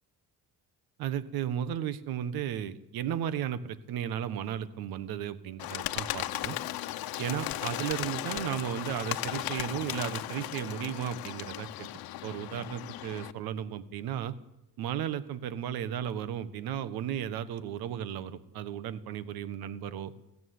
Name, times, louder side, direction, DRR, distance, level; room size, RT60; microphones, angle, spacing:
voice 1, 1.0-6.6 7.2-11.9 12.2-14.3 14.8-20.1, right 10 dB, 90° right, 14 dB, 1.5 m, -34 dB
Bird, 5.6-13.3, left 15 dB, 80° left, 1.1 m, -36 dB
21.5 x 15.5 x 9.6 m, 0.92 s
cardioid pair, 145°, 35 cm